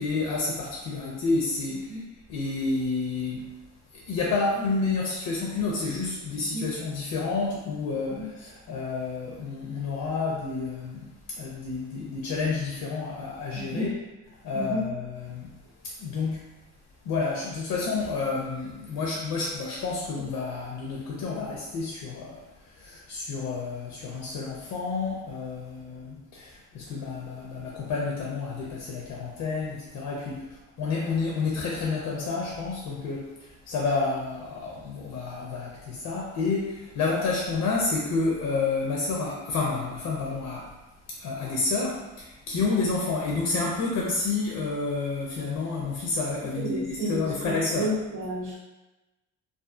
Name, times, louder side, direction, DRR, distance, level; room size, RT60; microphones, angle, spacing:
voice 1, 0.0-2.0 2.3-3.5 3.9-14.0 14.4-15.5 15.8-16.5 17.0-40.7 41.1-47.9, left 4 dB, 75° left, -3 dB, 0.5 m, -30 dB
voice 2, 6.4-6.7 8.1-8.3 13.6-13.9 14.5-14.9 46.6-48.6, right 1 dB, 90° right, -3 dB, 0.8 m, -32 dB
2.4 x 2.4 x 2.4 m, 1.1 s
cardioid pair, 90°, 30 cm